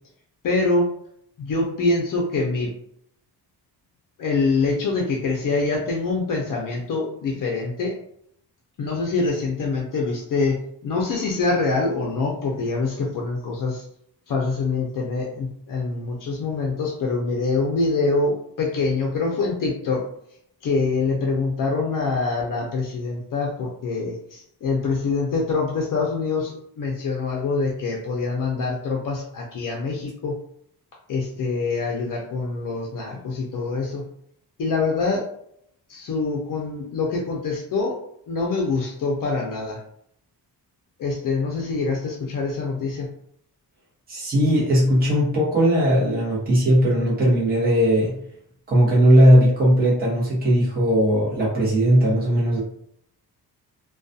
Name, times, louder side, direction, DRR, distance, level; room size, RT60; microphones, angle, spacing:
voice 1, 0.4-0.9 1.4-2.7 4.2-8.0 8.8-13.9 14.3-20.0 20.6-30.4 31.1-34.0 34.6-35.3 35.9-38.0 38.3-39.8 41.0-43.1, left 3 dB, 50° left, -1 dB, 0.5 m, -25 dB
voice 2, 44.1-48.2 48.7-52.6, equal, 20° right, -6 dB, 0.9 m, -18 dB
2.3 x 2.2 x 2.6 m, 0.70 s
wide cardioid pair, 145°, 41 cm